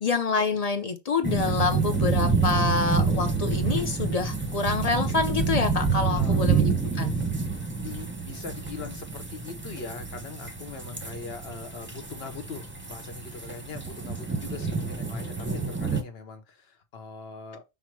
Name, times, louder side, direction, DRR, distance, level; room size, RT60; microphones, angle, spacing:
voice 1, 0.0-7.1, left 4 dB, 40° left, 0.6 m, -27 dB
sound 1, 1.2-16.0, right 5 dB, 10° right, 0.8 m, -28 dB
voice 2, 6.1-6.5 7.8-17.6, left 4 dB, 65° left, 1.1 m, -41 dB
5.6 x 2.1 x 4.5 m
omnidirectional pair, 1.1 m